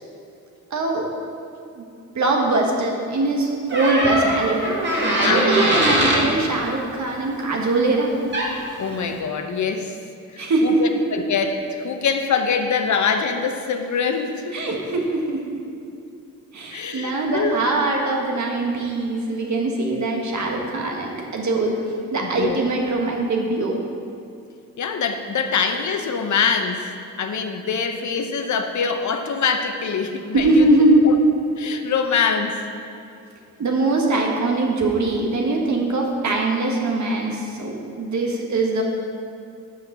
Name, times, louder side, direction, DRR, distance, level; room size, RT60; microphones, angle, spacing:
voice 1, 0.7-1.1 1.8-1.9 2.1-8.2 10.4-11.0 14.5-15.4 16.5-21.7 22.1-23.8 30.3-31.0 33.6-38.8, right 2 dB, 55° right, 0 dB, 1.6 m, -22 dB
Door, 3.7-6.3 8.0-8.1 8.3-8.7, equal, 30° right, 2.1 m, -21 dB
voice 2, 5.2-5.8 8.8-10.0 10.3-14.7 16.7-17.6 22.2-22.6 24.8-26.9 27.2-30.7 31.0-31.2 31.6-32.6, left 6 dB, 55° left, 6 dB, 0.8 m, -24 dB
6.5 x 5.7 x 6.7 m, 2.6 s
cardioid pair, 65°, 35 cm